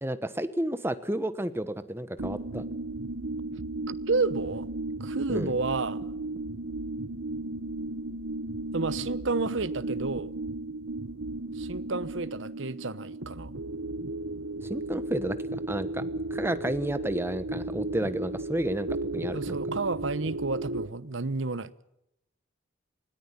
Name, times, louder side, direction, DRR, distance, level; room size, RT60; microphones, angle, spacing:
voice 1, 0.0-2.6 5.3-5.5 14.7-15.4 15.7-16.0 16.3-18.9 19.1-19.6, right 1 dB, 10° right, 1.1 m, -31 dB
sound 1, 2.2-20.9, right 2 dB, 85° right, 1.3 m, -35 dB
voice 2, 4.1-4.7 5.0-6.0 8.7-10.3 11.5-13.5 19.3-21.7, right 3 dB, 70° right, 1.0 m, -30 dB
20.5 x 18.0 x 9.8 m
head